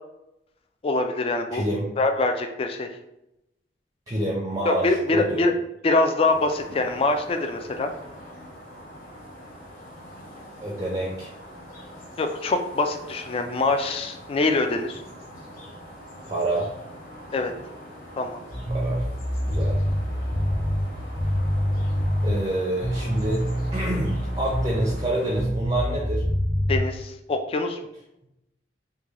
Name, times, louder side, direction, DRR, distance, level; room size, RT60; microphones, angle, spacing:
voice 1, 0.8-1.6 2.0-2.9 4.7-5.5 5.8-7.9 12.2-15.0 17.3-17.5 18.2-18.4 26.7-27.8, left 2 dB, 30° left, 5 dB, 0.3 m, -24 dB
voice 2, 1.5-1.9 4.1-5.5 10.6-11.3 16.3-16.7 18.7-19.1 19.4-19.8 22.2-23.4 23.7-26.2, right 1 dB, 20° right, -3 dB, 0.5 m, -27 dB
sound 1, 6.2-25.4, equal, 50° left, 0.9 m, -43 dB
sound 2, 18.5-22.4 22.8-25.0 25.3-26.8, equal, 80° left, 1.4 m, -26 dB
3.2 x 2.2 x 3.6 m, 0.86 s
head